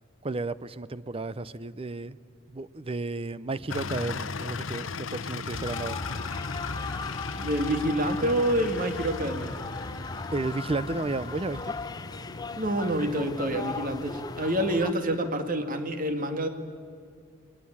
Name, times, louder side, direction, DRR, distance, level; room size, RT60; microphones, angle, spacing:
voice 1, 0.2-2.2 2.5-6.0 10.3-11.7, right 3 dB, 30° right, 0.6 m, -33 dB
sound 1, 3.7-15.4, left 5 dB, 80° left, 0.9 m, -38 dB
sound 2, 5.5-14.9, left 3 dB, 20° left, 0.6 m, -37 dB
voice 2, 7.4-9.7 12.6-16.5, right 1 dB, 45° right, 2.1 m, -27 dB
29.5 x 22.0 x 8.7 m
head